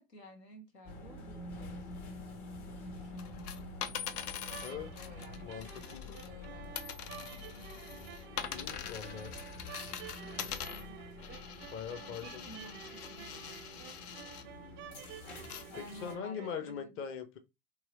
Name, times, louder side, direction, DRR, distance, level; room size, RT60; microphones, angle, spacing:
voice 1, 0.0-1.5 2.6-3.7 4.7-7.7 10.2-11.0 11.9-13.3 15.7-17.0, equal, 85° left, 1.4 m, -53 dB
sound 1, 0.8-16.1, left 2 dB, 50° left, 1.5 m, -48 dB
sound 2, 3.2-6.5 6.7-14.4 15.0-15.6 16.2-16.3, left 8 dB, 70° left, 0.7 m, -44 dB
sound 3, 4.4-16.7, right 10 dB, 25° right, 0.4 m, -51 dB
voice 2, 5.4-6.0 8.5-9.4 11.7-12.5 15.8-17.4, left 7 dB, 30° left, 0.7 m, -42 dB
4.6 x 3.2 x 3.0 m
figure-of-eight pair, 75°, 48 cm